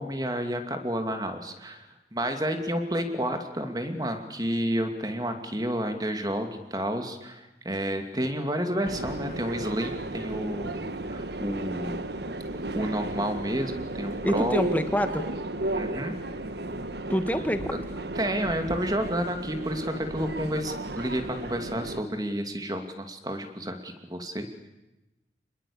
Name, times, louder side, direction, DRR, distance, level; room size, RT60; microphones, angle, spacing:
voice 1, 0.0-1.9 2.1-10.8 11.1-12.0 12.7-14.6 15.7-16.1 18.1-24.5, equal, 20° right, 6 dB, 2.6 m, -30 dB
Subway metro underground, 8.9-22.0, right 2 dB, 70° right, 1.5 m, -34 dB
voice 2, 14.2-15.2 17.1-17.7, equal, 10° left, 8 dB, 1.7 m, -26 dB
26.5 x 21.0 x 8.7 m, 0.98 s
head